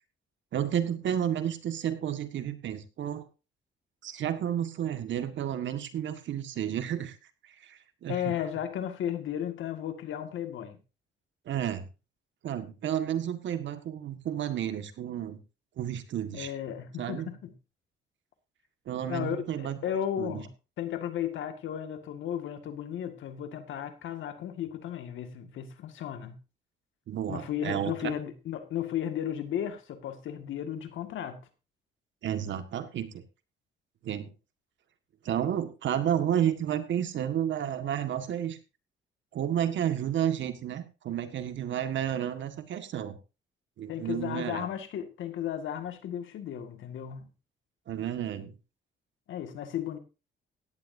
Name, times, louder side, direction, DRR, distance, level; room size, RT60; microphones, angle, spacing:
voice 1, 0.5-3.2 4.0-7.2 7.4-8.4 11.5-11.9 12.4-15.4 15.8-16.5 17.0-17.3 18.9-19.8 20.2-20.4 27.1-28.1 32.2-33.2 34.0-34.3 35.2-38.6 39.3-43.2 43.8-44.7 47.9-48.5, right 10 dB, 70° right, 1.7 m, -31 dB
voice 2, 8.1-10.8 16.3-17.5 19.1-20.5 20.8-26.4 27.3-31.4 43.9-47.3 49.3-50.0, left 10 dB, 75° left, 1.9 m, -34 dB
16.5 x 11.0 x 2.7 m
cardioid pair, 90°, 20 cm